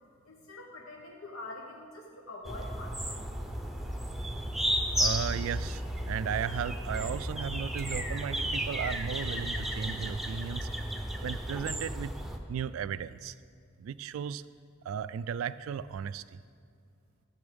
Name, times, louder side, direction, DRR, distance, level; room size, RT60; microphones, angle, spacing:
voice 1, 0.2-3.2, left 2 dB, 85° left, -1 dB, 1.1 m, -45 dB
sound 1, 2.5-12.4, equal, ahead, 0.7 m, -33 dB
voice 2, 5.0-10.7 11.2-12.1 12.5-13.3 13.8-14.4 14.8-16.2, right 7 dB, 75° right, 16 dB, 0.3 m, -35 dB
13.0 x 7.0 x 5.2 m, 2.2 s
head